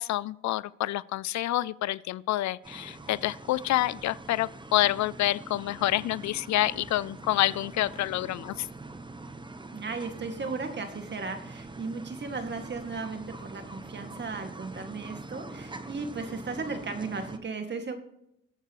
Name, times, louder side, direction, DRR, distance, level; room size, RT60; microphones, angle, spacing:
voice 1, 0.0-8.7, left 15 dB, 70° left, 20 dB, 0.4 m, -28 dB
sound 1, 2.6-17.4, right 2 dB, 15° right, 1.0 m, -44 dB
voice 2, 9.7-18.0, right 4 dB, 35° right, 5 dB, 2.2 m, -36 dB
21.0 x 8.0 x 3.1 m, 0.79 s
cardioid pair, 90°, 30 cm